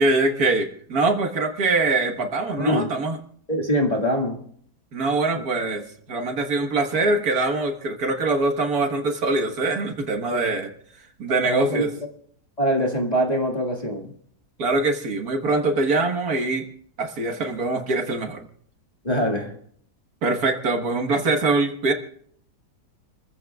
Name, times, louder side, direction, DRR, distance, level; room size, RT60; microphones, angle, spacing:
voice 1, 0.0-3.2 4.9-10.7 11.2-11.9 14.6-16.7 17.0-18.4 20.2-21.9, right 3 dB, 65° right, 1.8 m, -23 dB
voice 2, 2.6-2.9 3.5-4.4 5.3-5.4 10.3-10.4 11.4-11.9 12.6-14.1 19.0-19.5, equal, 25° left, 1.9 m, -23 dB
29.5 x 15.0 x 2.3 m
omnidirectional pair, 1.8 m